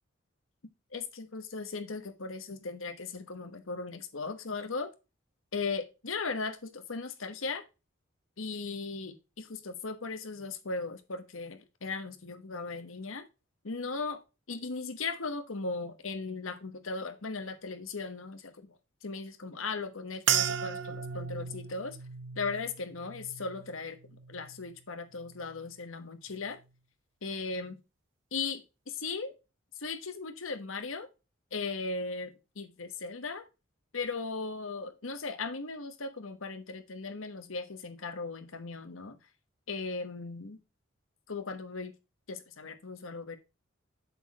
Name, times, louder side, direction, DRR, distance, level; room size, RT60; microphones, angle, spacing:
voice 1, 0.9-4.9 5.5-7.6 8.4-13.2 13.6-14.2 14.5-18.7 19.0-22.0 22.4-24.0 24.3-26.6 27.2-27.8 28.3-29.3 29.8-31.1 31.5-33.4 33.9-39.2 39.7-40.6 41.3-41.9 42.3-43.4, left 4 dB, 85° left, 1.2 m, -37 dB
sound 1, 20.3-24.8 25.1-25.8 26.4-26.6, right 9 dB, 65° right, 0.6 m, -35 dB
7.9 x 6.6 x 3.0 m
head